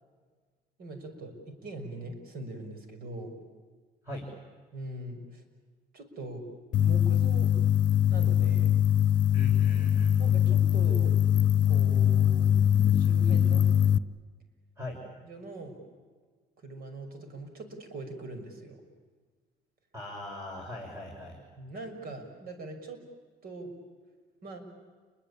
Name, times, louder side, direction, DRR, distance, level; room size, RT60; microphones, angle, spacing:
voice 1, 0.8-3.3 4.7-5.4 5.9-6.4 6.8-7.5 8.1-8.9 10.2-11.1 11.7-12.5 12.9-13.7 15.2-15.8 16.6-18.8 21.0-21.1 21.6-23.0 23.4-23.7 24.4-24.6, right 2 dB, 65° right, 7 dB, 6.4 m, -41 dB
sound 1, 6.7-14.0, left 10 dB, 50° left, 0.9 m, -23 dB
voice 2, 9.3-10.2 14.8-15.0 19.9-21.4, left 1 dB, 15° right, -1 dB, 6.9 m, -40 dB
30.0 x 22.5 x 8.7 m, 1.5 s
cardioid pair, 110°, 17 cm